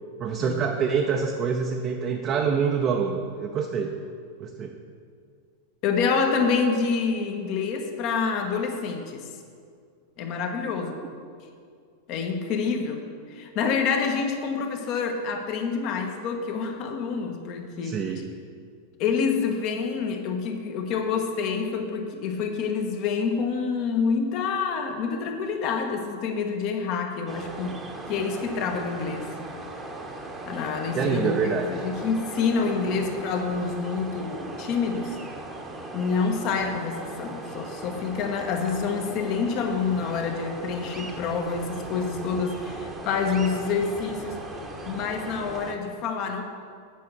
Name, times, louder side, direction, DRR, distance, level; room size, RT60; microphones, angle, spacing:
voice 1, 0.2-3.9 4.4-4.8 17.8-18.3 30.9-31.7 32.8-33.0, right 6 dB, 30° right, 2 dB, 0.7 m, -26 dB
voice 2, 5.8-9.3 10.2-11.0 12.1-18.0 19.0-27.8 28.1-29.3 30.4-35.2 35.9-44.4 44.9-46.4, left 5 dB, 40° left, 4 dB, 1.1 m, -27 dB
sound 1, 27.3-45.7, right 2 dB, 15° right, 1.0 m, -38 dB
8.5 x 5.8 x 6.7 m, 2.2 s
figure-of-eight pair, 90°, 0 cm